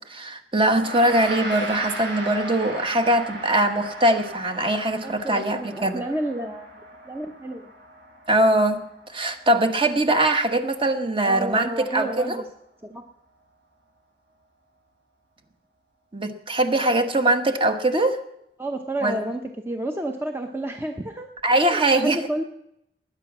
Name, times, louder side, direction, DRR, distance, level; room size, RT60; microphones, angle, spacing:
voice 1, 0.1-6.0 8.3-8.8 9.1-12.4 16.1-18.2 19.0-19.2 21.4-22.3, right 1 dB, 30° right, 7 dB, 1.2 m, -22 dB
Gong, 0.7-10.2, right 2 dB, 80° right, 6.6 m, -37 dB
voice 2, 5.0-6.7 7.1-7.7 11.2-12.4 12.8-13.0 18.6-21.3 21.6-22.4, right 1 dB, 15° right, 4 dB, 0.8 m, -30 dB
20.0 x 9.6 x 6.1 m, 0.80 s
head